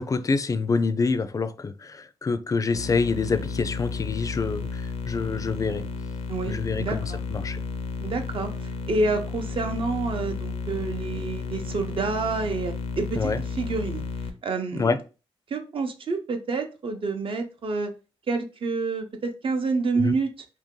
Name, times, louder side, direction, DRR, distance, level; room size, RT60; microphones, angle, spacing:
voice 1, 0.0-5.8 6.5-7.6 13.2-13.4 14.7-15.0 20.0-20.1, left 4 dB, 35° left, 0.4 m, -26 dB
sound 1, 2.7-14.3, left 4 dB, 85° left, 0.5 m, -33 dB
voice 2, 6.3-7.2 8.0-14.0 14.4-15.0 15.5-17.9 18.3-20.5, right 3 dB, 55° right, 0.7 m, -28 dB
2.9 x 2.7 x 3.7 m
cardioid pair, 80°, 11 cm